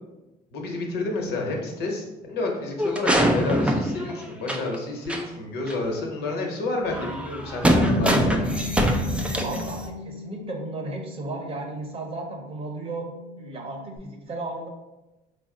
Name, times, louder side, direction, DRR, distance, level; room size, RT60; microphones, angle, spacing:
voice 1, 0.5-8.4, left 2 dB, 70° left, 0 dB, 0.9 m, -30 dB
sound 1, 2.8-4.8 5.1-5.2 5.7-5.8 6.9-9.9, equal, 5° right, 0.3 m, -23 dB
Bass guitar, 7.7-14.0, left 4 dB, 90° left, 0.5 m, -35 dB
voice 2, 9.4-13.1 13.4-14.7, right 2 dB, 35° right, 1 dB, 0.7 m, -34 dB
3.9 x 2.0 x 3.7 m, 1.0 s
cardioid pair, 110°, 17 cm